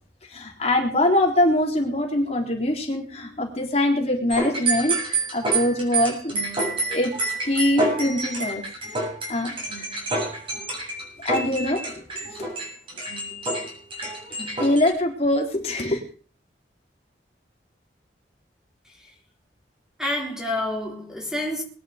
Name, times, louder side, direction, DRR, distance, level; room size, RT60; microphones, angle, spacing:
voice 1, 0.3-6.3 6.9-7.1 7.4-8.6 8.9-10.0 10.9-11.0 11.2-12.4 14.3-16.0, left 1 dB, 35° left, 4.1 m, -24 dB
sound 1, 4.3-14.9, right 2 dB, 30° right, 7.5 m, -28 dB
voice 2, 18.8-19.2 20.0-21.6, left 1 dB, 5° right, 3.8 m, -29 dB
22.0 x 11.0 x 5.2 m
head